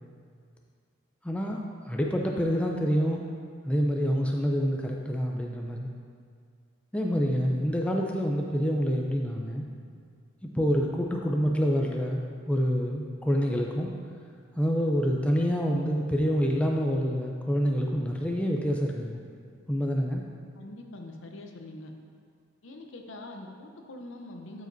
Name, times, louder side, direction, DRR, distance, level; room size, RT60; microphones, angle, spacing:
voice 1, 1.2-1.6 1.9-3.2 3.6-5.9 6.9-9.7 10.5-13.9 14.6-19.2 19.7-20.2, equal, 5° left, 0 dB, 0.4 m, -27 dB
voice 2, 20.6-21.9 22.6-24.7, left 2 dB, 70° left, 3 dB, 0.7 m, -43 dB
11.5 x 5.0 x 2.7 m, 2.1 s
head